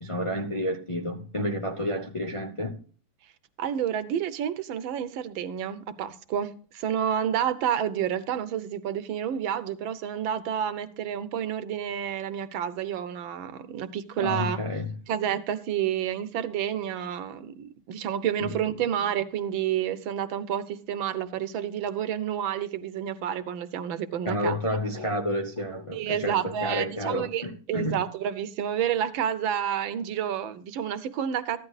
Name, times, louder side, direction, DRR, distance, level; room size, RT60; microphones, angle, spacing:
voice 1, 0.0-2.8 14.2-15.0 18.4-18.5 24.2-28.0, left 1 dB, 50° left, 0.3 m, -30 dB
voice 2, 3.6-14.6 15.1-24.6 25.9-31.6, right 9 dB, 80° right, 1.6 m, -29 dB
14.5 x 11.0 x 2.4 m
omnidirectional pair, 2.1 m